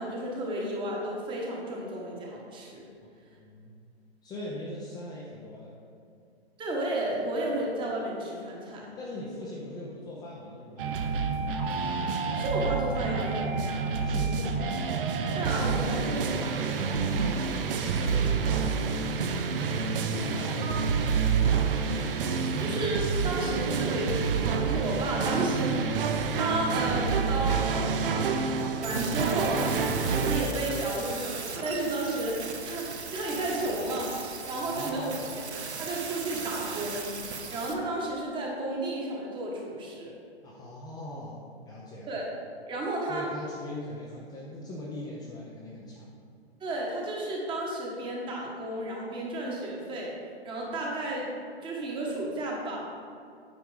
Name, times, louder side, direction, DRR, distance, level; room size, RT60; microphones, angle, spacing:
voice 1, 0.0-2.8 6.6-8.9 12.3-13.9 15.3-16.9 20.6-20.7 22.6-28.1 28.8-29.7 30.0-40.1 42.1-42.3 42.7-43.3 46.6-50.1 50.4-51.3 51.6-52.8, right 1 dB, 15° right, -2 dB, 1.2 m, -33 dB
voice 2, 3.3-3.7 4.2-5.7 9.0-11.3 14.0-14.9 16.7-17.6 17.9-19.3 20.2-21.8 34.6-35.2 40.4-42.2 43.1-46.1, left 1 dB, 10° left, -5 dB, 0.6 m, -41 dB
sound 1, 10.8-30.4, right 5 dB, 55° right, 0.7 m, -28 dB
sound 2, 28.8-37.7, right 5 dB, 90° right, 1.1 m, -38 dB
9.1 x 4.6 x 4.9 m, 2.4 s
hypercardioid pair, 140°, 32 cm